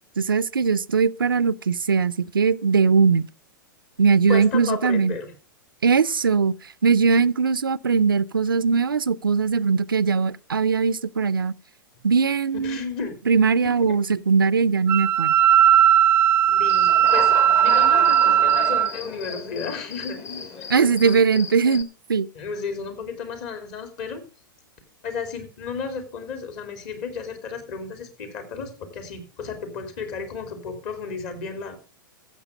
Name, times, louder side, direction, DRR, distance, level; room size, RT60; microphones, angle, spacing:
voice 1, 0.2-3.3 4.0-5.1 5.8-6.5 6.8-11.5 12.0-12.8 13.3-15.4 20.7-22.3, right 5 dB, 85° right, 0.5 m, -20 dB
voice 2, 4.3-5.3 12.6-13.1 13.6-14.0 16.5-21.4 22.3-24.2 25.0-31.8, left 5 dB, 45° left, 3.2 m, -33 dB
Wind instrument woodwind instrument, 14.9-18.9, right 10 dB, 15° right, 0.5 m, -17 dB
Human voice / Cricket, 16.7-21.8, left 5 dB, 30° left, 1.4 m, -34 dB
14.5 x 7.3 x 5.0 m
figure-of-eight pair, 105°, 11 cm